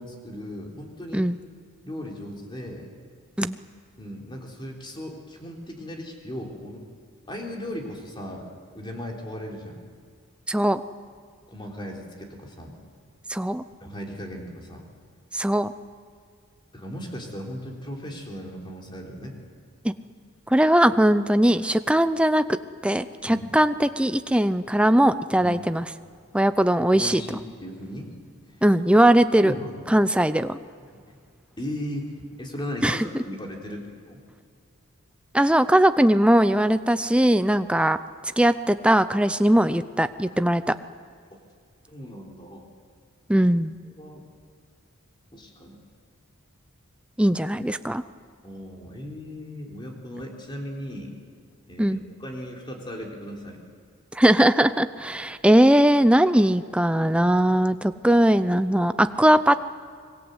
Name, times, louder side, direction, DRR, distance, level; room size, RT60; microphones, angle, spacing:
voice 1, 0.0-1.3 1.8-2.9 4.0-6.8 7.3-8.5 8.7-9.8 11.5-12.8 13.8-14.8 16.7-19.4 23.3-23.5 25.4-25.6 26.9-28.1 29.4-29.9 31.6-32.1 32.4-34.2 41.3-41.4 41.9-42.7 44.0-44.2 45.3-45.8 48.4-51.1 51.7-53.6, equal, 20° left, 0 dB, 3.8 m, -37 dB
voice 2, 10.5-10.8 13.3-13.6 15.3-15.7 19.8-19.9 20.5-22.4 22.8-25.8 26.3-27.4 28.6-29.5 29.9-30.6 32.8-33.0 35.3-38.0 38.4-40.7 43.3-43.7 47.2-48.0 51.8-52.0 54.1-59.5, right 1 dB, 5° right, 11 dB, 0.6 m, -20 dB
25.5 x 22.0 x 8.1 m, 2.1 s
head